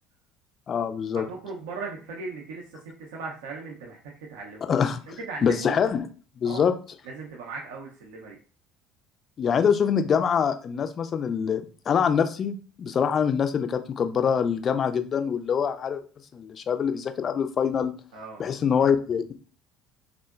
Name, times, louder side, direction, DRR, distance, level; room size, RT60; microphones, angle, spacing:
voice 1, 0.7-1.2 4.7-5.0 5.4-6.1 6.4-6.7 9.4-16.0 16.3-17.9 18.4-19.3, left 7 dB, 40° left, 9 dB, 0.3 m, -24 dB
voice 2, 1.3-4.0 4.3-4.6 5.1-5.8 6.4-6.7 7.0-8.4 18.1-18.4, right 4 dB, 70° right, -1 dB, 0.5 m, -38 dB
3.6 x 2.0 x 2.2 m, 0.40 s
figure-of-eight pair, 60°, 0 cm